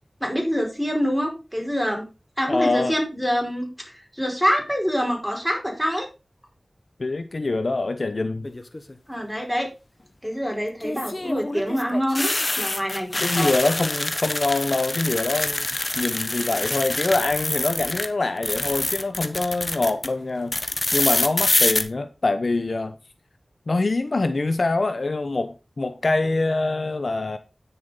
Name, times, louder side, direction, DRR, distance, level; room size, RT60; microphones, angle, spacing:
voice 1, 0.2-2.0 2.4-6.1 9.1-9.7 10.2-13.5, equal, 5° right, 5.2 m, -25 dB
voice 2, 2.5-2.9 7.0-8.5 13.2-15.7 16.0-20.6 20.9-23.0 23.7-27.4, left 3 dB, 70° left, 0.8 m, -24 dB
sound 1, 8.4-8.9 10.8-18.1 18.4-20.1 20.5-21.8, left 2 dB, 40° left, 1.2 m, -26 dB
9.6 x 7.0 x 5.2 m
cardioid pair, 40°, 0 cm